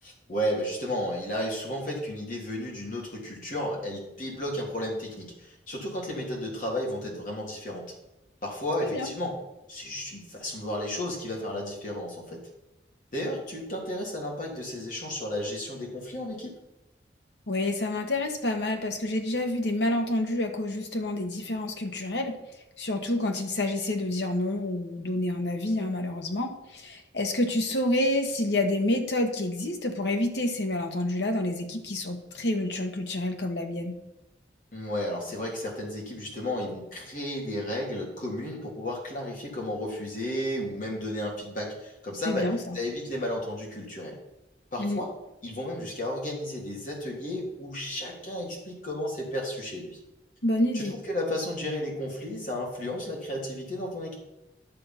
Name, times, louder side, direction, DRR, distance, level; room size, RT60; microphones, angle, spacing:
voice 1, 0.0-7.9 8.4-9.3 9.7-12.4 13.1-16.6 34.7-44.2 44.7-45.1 45.4-50.0 50.7-54.1, left 1 dB, 50° left, -2 dB, 3.1 m, -33 dB
voice 2, 17.5-22.3 22.8-33.9 42.2-42.8 44.8-45.0 50.4-51.0, left 1 dB, 75° left, 4 dB, 1.4 m, -28 dB
10.5 x 6.9 x 5.9 m, 0.92 s
head